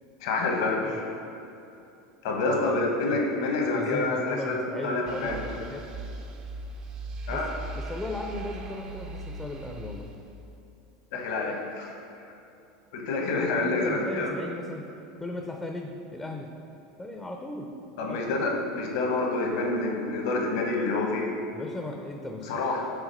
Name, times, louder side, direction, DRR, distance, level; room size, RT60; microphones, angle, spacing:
voice 1, 0.2-1.0 2.2-5.4 7.3-7.5 11.1-11.9 12.9-14.3 18.0-21.3 22.5-22.9, left 3 dB, 75° left, 0 dB, 1.0 m, -27 dB
voice 2, 2.4-3.3 3.7-5.9 7.3-7.4 7.8-10.1 13.6-14.9 15.2-16.5 17.0-17.7 18.1-18.2 21.5-22.5, left 1 dB, 10° left, 2 dB, 0.5 m, -37 dB
sound 1, 5.0-10.5, right 2 dB, 40° right, 0.5 m, -39 dB
5.0 x 3.5 x 5.3 m, 2.8 s
supercardioid pair, 105°, 2 cm